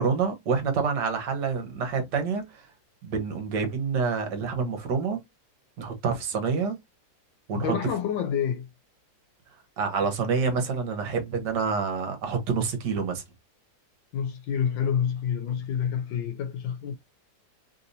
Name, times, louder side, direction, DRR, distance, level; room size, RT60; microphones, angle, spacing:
voice 1, 0.0-2.4 3.0-5.2 5.8-6.8 7.5-7.7 9.8-13.2, right 5 dB, 65° right, 1.6 m, -27 dB
voice 2, 7.5-8.7 14.1-17.0, left 8 dB, 80° left, 1.3 m, -28 dB
3.4 x 2.8 x 2.6 m
omnidirectional pair, 2.0 m